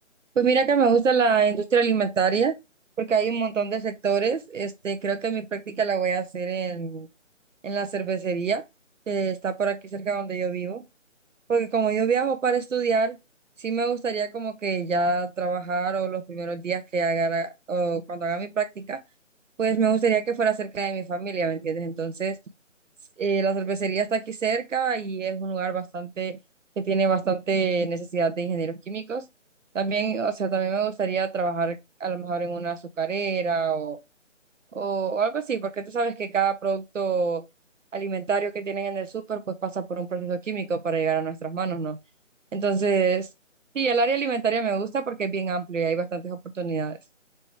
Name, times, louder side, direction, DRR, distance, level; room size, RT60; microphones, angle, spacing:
voice 1, 0.4-2.5 3.0-7.1 7.6-8.6 9.1-10.8 11.5-13.2 13.6-19.0 19.6-22.4 23.2-26.4 26.8-29.2 29.7-34.0 34.7-37.4 37.9-42.0 42.5-43.3 43.7-47.0, right 5 dB, 80° right, 0.6 m, -26 dB
4.2 x 3.3 x 3.0 m
figure-of-eight pair, 155°, 38 cm